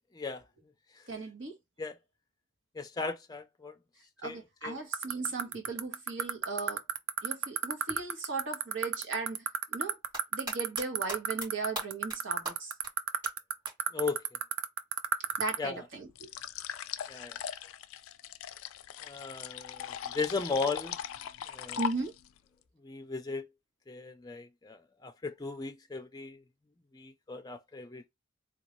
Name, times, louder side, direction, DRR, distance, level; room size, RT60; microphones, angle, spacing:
voice 1, 1.1-1.6 4.2-6.8 7.2-10.0 10.3-12.7 15.4-16.3 21.8-22.1, right 3 dB, 65° right, 1.1 m, -37 dB
voice 2, 2.7-3.7 4.2-4.8 13.9-14.2 15.6-15.8 17.1-17.4 19.0-21.0 21.5-21.8 22.8-23.5 23.9-26.4 26.9-28.1, left 4 dB, 20° left, 0.4 m, -36 dB
sound 1, 4.9-15.6, right 9 dB, 90° right, 0.5 m, -28 dB
sound 2, 9.9-10.8 11.1-11.5 11.8-12.2 12.5-12.6 12.8-12.9 13.2-13.3 13.7-13.8 15.3-15.4, right 1 dB, 25° right, 2.5 m, -37 dB
sound 3, 16.1-22.4, left 9 dB, 90° left, 0.3 m, -40 dB
3.8 x 2.3 x 3.0 m
head